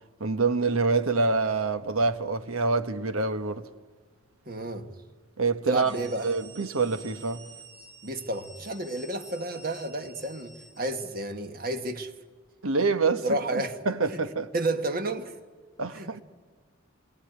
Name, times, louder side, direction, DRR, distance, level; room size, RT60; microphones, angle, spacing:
voice 1, 0.2-3.6 5.4-5.9 6.2-7.4 12.6-14.5 15.8-16.2, right 4 dB, 90° right, 1.2 m, -26 dB
voice 2, 4.5-4.9 5.7-6.3 8.0-12.1 13.2-13.8 14.1-14.2 14.5-15.3 15.9-16.2, right 2 dB, 45° right, 1.5 m, -31 dB
sound 1, 5.7-11.4, right 3 dB, 60° right, 3.5 m, -50 dB
28.5 x 22.5 x 9.0 m
head